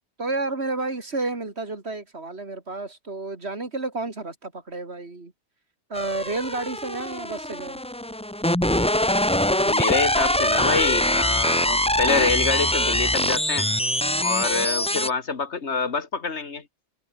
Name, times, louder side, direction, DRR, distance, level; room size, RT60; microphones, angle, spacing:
voice 1, 0.2-5.3 5.9-7.8, right 3 dB, 65° right, 3.4 m, -31 dB
sound 1, 5.9-15.1, left 1 dB, 5° left, 1.2 m, -23 dB
voice 2, 9.6-13.7 14.2-16.6, left 4 dB, 75° left, 2.2 m, -26 dB
omnidirectional pair, 1.2 m